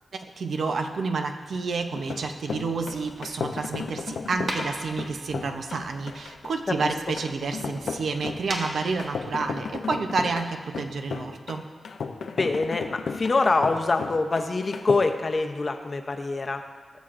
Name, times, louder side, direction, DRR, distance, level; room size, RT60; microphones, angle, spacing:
voice 1, 0.1-11.6, right 4 dB, 70° right, 5 dB, 0.7 m, -29 dB
sound 1, 1.9-14.9, left 5 dB, 75° left, 0.6 m, -34 dB
sound 2, 2.7-9.7, right 1 dB, 45° right, 1.2 m, -41 dB
voice 2, 12.4-16.6, left 3 dB, 40° left, 5 dB, 0.7 m, -25 dB
18.0 x 7.2 x 2.6 m, 1.5 s
wide cardioid pair, 100°, 0 cm